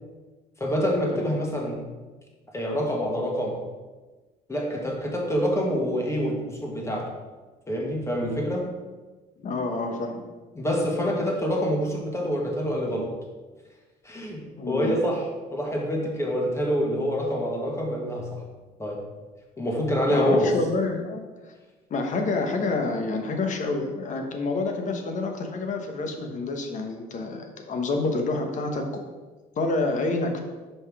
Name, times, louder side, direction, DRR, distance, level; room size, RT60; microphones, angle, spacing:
voice 1, 0.6-1.8 2.5-3.6 4.5-7.1 7.7-8.7 10.5-13.1 14.0-18.4 18.8-19.0 19.6-20.5, equal, 15° left, 0 dB, 1.6 m, -26 dB
voice 2, 9.4-10.2 14.6-15.0 20.1-21.2 21.9-29.0 29.6-30.4, left 3 dB, 45° left, 4 dB, 1.2 m, -28 dB
5.5 x 5.3 x 4.8 m, 1.3 s
cardioid pair, 110°, 17 cm